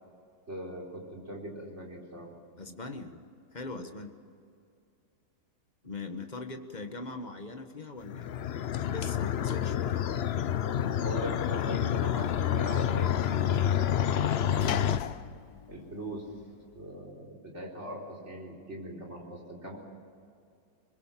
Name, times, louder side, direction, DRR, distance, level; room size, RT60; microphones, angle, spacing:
voice 1, 0.5-2.3 11.0-13.8 15.7-16.2 16.7-19.8, right 1 dB, 35° right, -2 dB, 4.6 m, -40 dB
voice 2, 2.6-3.2 3.5-4.1 5.8-8.5 8.9-10.1, left 3 dB, 25° left, 6 dB, 1.5 m, -41 dB
sound 1, 8.0-15.0, left 9 dB, 80° left, 0.5 m, -28 dB
Sliding door / Slam, 11.0-16.8, left 9 dB, 65° left, 1.2 m, -43 dB
24.0 x 21.5 x 7.5 m, 2.4 s
omnidirectional pair, 1.9 m